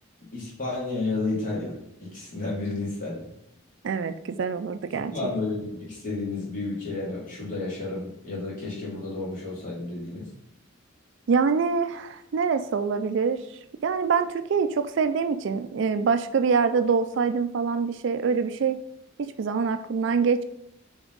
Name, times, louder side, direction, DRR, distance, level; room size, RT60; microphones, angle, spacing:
voice 1, 0.3-3.3 5.1-10.2, left 3 dB, 40° left, -6 dB, 2.4 m, -31 dB
voice 2, 3.8-5.1 11.3-13.4 13.8-18.8 19.2-20.4, right 5 dB, 60° right, 10 dB, 0.4 m, -25 dB
6.9 x 3.6 x 3.9 m, 0.76 s
head